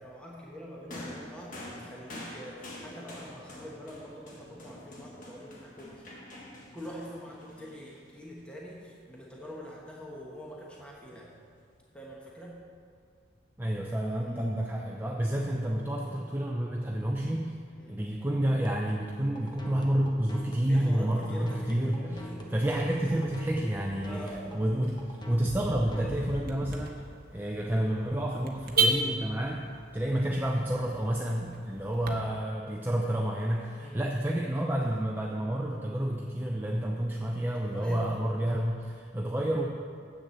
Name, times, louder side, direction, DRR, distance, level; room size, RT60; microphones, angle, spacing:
voice 1, 0.0-6.1 6.7-11.3 11.9-12.6 14.2-14.6 17.8-18.0 20.7-22.6 24.0-24.6 30.1-30.2 33.7-34.1 37.5-38.4, equal, 5° left, -4 dB, 1.2 m, -44 dB
sound 1, 0.9-8.4 9.4-9.5, left 1 dB, 45° left, 1.6 m, -46 dB
voice 2, 13.6-17.6 17.9-22.2 22.5-24.2 24.5-27.1 27.3-29.7 29.9-39.7, right 1 dB, 10° right, -1 dB, 0.6 m, -29 dB
sound 2, 18.6-26.8, equal, 25° left, 1.0 m, -42 dB
Car / Alarm, 22.9-32.1, right 3 dB, 55° right, 1.0 m, -36 dB
8.1 x 7.0 x 7.0 m, 2.2 s
head